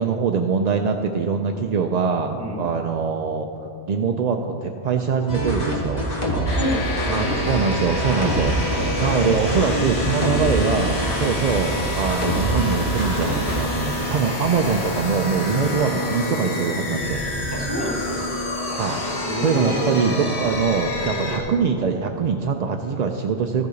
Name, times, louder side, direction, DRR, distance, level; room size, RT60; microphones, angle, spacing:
voice 1, 0.0-3.5 3.8-6.1 7.1-8.6 9.0-17.2 18.8-19.0 19.4-23.7, right 5 dB, 55° right, 4 dB, 0.5 m, -23 dB
voice 2, 2.4-2.7 6.3-7.7 8.7-9.1 11.2-11.4 15.5-15.7 17.5-18.2 19.2-20.0, equal, 20° right, -1 dB, 1.6 m, -30 dB
sound 1, 5.3-13.6, right 1 dB, 35° left, 1.7 m, -25 dB
sound 2, 6.4-21.4, left 1 dB, 75° left, 2.0 m, -28 dB
13.5 x 6.7 x 5.0 m, 2.6 s
omnidirectional pair, 1.1 m